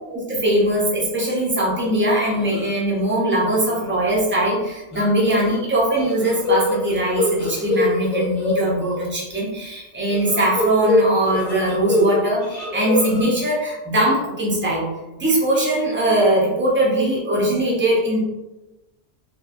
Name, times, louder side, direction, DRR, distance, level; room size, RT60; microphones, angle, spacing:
voice 1, 0.1-14.9 15.2-18.2, right 1 dB, 15° right, -5 dB, 0.4 m, -21 dB
sound 1, 2.3-2.7 3.1-3.4 3.7-3.8 4.9-5.6 5.9-9.0 10.1-12.2 12.4-13.2, left 2 dB, 40° left, 0.9 m, -23 dB
3.0 x 2.3 x 2.4 m, 1.0 s
omnidirectional pair, 1.2 m